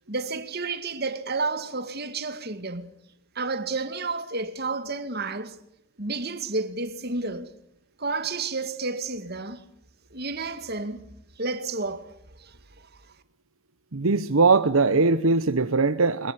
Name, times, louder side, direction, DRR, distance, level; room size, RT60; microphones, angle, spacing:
voice 1, 0.1-2.9 3.4-5.6 6.0-7.5 8.0-9.6 10.1-11.1 11.4-12.1 12.4-12.9, right 3 dB, 45° right, 2.1 m, -31 dB
voice 2, 13.9-16.3, right 3 dB, 70° right, 1.0 m, -21 dB
23.0 x 21.5 x 10.0 m
head